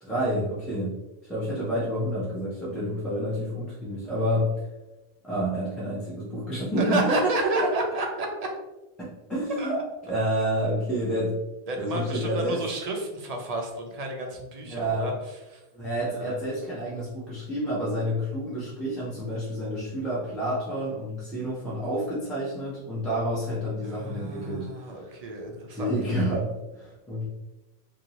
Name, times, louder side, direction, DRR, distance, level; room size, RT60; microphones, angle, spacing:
voice 1, 0.0-1.0 1.3-4.5 5.2-7.3 9.0-9.8 10.1-11.4 11.8-12.6 14.7-15.1 15.7-25.0 25.7-27.2, equal, ahead, -10 dB, 0.6 m, -29 dB
voice 2, 6.8-8.5 9.6-9.8 11.7-15.6 16.1-16.4 23.8-25.9, right 1 dB, 50° right, 2 dB, 0.5 m, -30 dB
2.7 x 2.7 x 2.9 m, 1.0 s
omnidirectional pair, 1.1 m